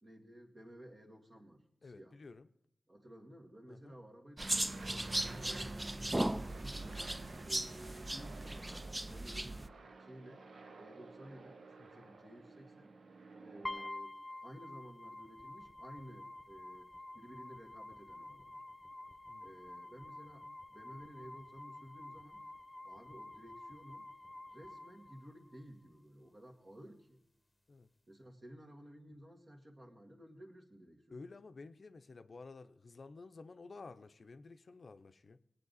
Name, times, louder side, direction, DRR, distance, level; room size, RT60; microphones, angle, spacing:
voice 1, 0.0-2.2 2.9-6.1 6.4-7.1 7.4-9.7 10.0-10.5 10.8-13.0 13.4-16.9 17.1-18.6 19.4-22.4 22.8-24.1 24.5-27.2 28.1-31.2, equal, 45° right, 2.0 m, -55 dB
voice 2, 1.8-2.5 3.7-4.0 11.8-12.1 19.3-19.6 27.7-27.9 31.1-35.4, left 3 dB, 65° left, 0.5 m, -52 dB
sound 1, 4.4-9.7, right 1 dB, 20° right, 0.4 m, -38 dB
Aircraft, 4.4-13.9, right 3 dB, 80° right, 0.7 m, -53 dB
sound 2, 13.6-25.7, left 2 dB, 15° left, 1.1 m, -49 dB
20.0 x 8.9 x 4.0 m
cardioid pair, 50°, 0 cm